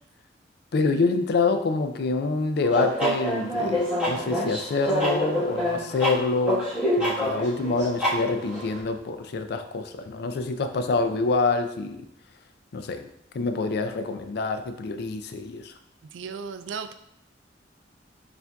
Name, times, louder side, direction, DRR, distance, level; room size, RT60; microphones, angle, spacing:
voice 1, 0.7-6.7 7.0-12.0 12.7-13.1 13.3-15.7, left 3 dB, 60° left, 8 dB, 0.4 m, -26 dB
sound 1, 2.6-8.8, equal, 5° right, 1.3 m, -26 dB
voice 2, 16.1-16.9, right 5 dB, 90° right, 10 dB, 0.3 m, -35 dB
6.9 x 2.5 x 2.2 m, 0.79 s
head